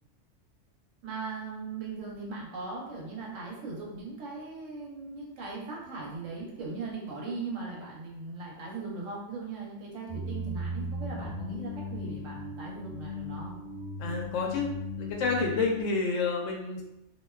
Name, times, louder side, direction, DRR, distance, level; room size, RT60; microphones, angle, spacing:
voice 1, 1.0-13.5, right 3 dB, 85° right, -3 dB, 1.1 m, -39 dB
sound 1, 10.1-15.8, left 1 dB, 5° right, 0.8 m, -37 dB
voice 2, 14.0-14.7 15.0-16.8, left 4 dB, 80° left, 0 dB, 0.9 m, -29 dB
2.5 x 2.2 x 2.2 m, 0.85 s
omnidirectional pair, 1.3 m